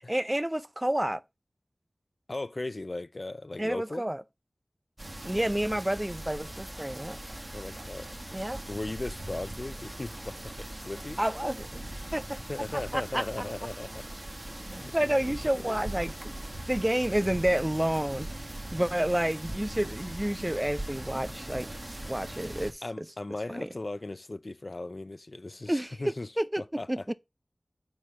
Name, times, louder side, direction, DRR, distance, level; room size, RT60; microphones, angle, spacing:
voice 1, 0.1-1.2 3.6-4.2 5.2-7.2 8.3-8.6 11.2-11.8 12.1-12.4 12.9-13.2 14.9-16.4 16.7-18.3 18.7-21.7 22.1-23.1 23.5-23.7 25.7-26.6 26.9-27.1, right 1 dB, 20° right, 0.5 m, -29 dB
voice 2, 2.3-4.0 7.5-8.1 8.7-11.2 12.5-14.0 14.7-14.9 15.2-15.3 15.6-15.8 22.8-26.3 26.6-27.0, left 2 dB, 55° left, 0.4 m, -37 dB
sound 1, 5.0-22.7, right 1 dB, 40° right, 1.6 m, -40 dB
4.7 x 4.3 x 5.7 m
wide cardioid pair, 40°, 0 cm